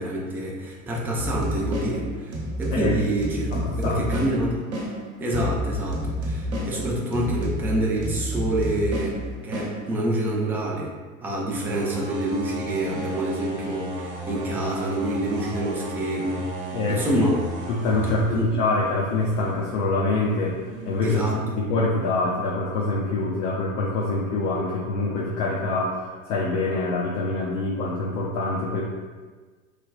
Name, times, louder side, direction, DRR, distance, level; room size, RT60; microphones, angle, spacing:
voice 1, 0.0-4.7 5.2-10.9 11.2-17.3 18.3-18.5 21.0-21.6, right 1 dB, 5° right, -3 dB, 0.3 m, -27 dB
sound 1, 1.2-10.3, left 1 dB, 70° right, 0.9 m, -30 dB
voice 2, 3.5-4.0 16.7-17.3 17.7-20.5 20.9-28.8, left 2 dB, 50° left, -3 dB, 0.7 m, -25 dB
sound 2, 11.6-21.3, right 1 dB, 30° right, 0.8 m, -35 dB
3.3 x 2.2 x 3.9 m, 1.4 s
figure-of-eight pair, 80°, 42 cm